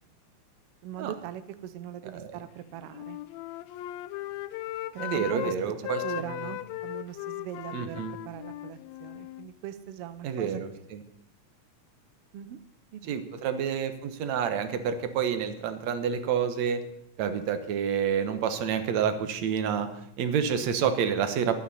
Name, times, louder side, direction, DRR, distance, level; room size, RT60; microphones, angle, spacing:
voice 1, 0.8-3.2 4.9-5.5 6.0-10.6 12.3-12.6 12.9-13.1, right 10 dB, 85° right, 11 dB, 1.3 m, -41 dB
Wind instrument woodwind instrument, 2.8-5.6 5.8-9.5, left 15 dB, 80° left, 1.5 m, -37 dB
voice 2, 5.0-6.3 7.7-8.1 10.2-11.0 13.1-16.8 17.2-19.9 20.2-21.6, right 7 dB, 65° right, 9 dB, 2.2 m, -28 dB
23.0 x 9.4 x 4.2 m, 0.77 s
omnidirectional pair, 3.7 m